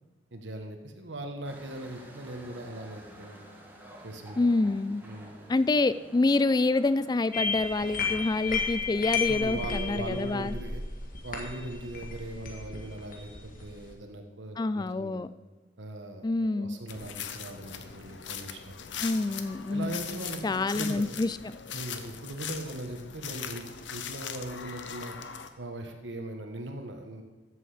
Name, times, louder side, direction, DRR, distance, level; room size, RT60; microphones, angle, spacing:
voice 1, 0.3-3.4 4.0-4.5 5.0-5.5 9.3-10.8 11.2-15.2 15.8-19.0 19.7-21.1 21.7-23.6 23.9-25.2 25.6-27.2, right 1 dB, 70° right, 4 dB, 1.3 m, -40 dB
sound 1, 1.4-10.2, right 1 dB, 10° right, 1.7 m, -51 dB
voice 2, 4.4-5.0 5.5-10.5 14.6-15.3 16.2-16.8 19.0-20.0 20.4-21.4, left 3 dB, 20° left, 15 dB, 0.3 m, -27 dB
sound 2, 7.3-13.9, left 5 dB, 45° left, 1.8 m, -33 dB
sound 3, 16.9-25.5, left 7 dB, 75° left, 0.8 m, -40 dB
14.0 x 7.9 x 5.0 m, 1.3 s
head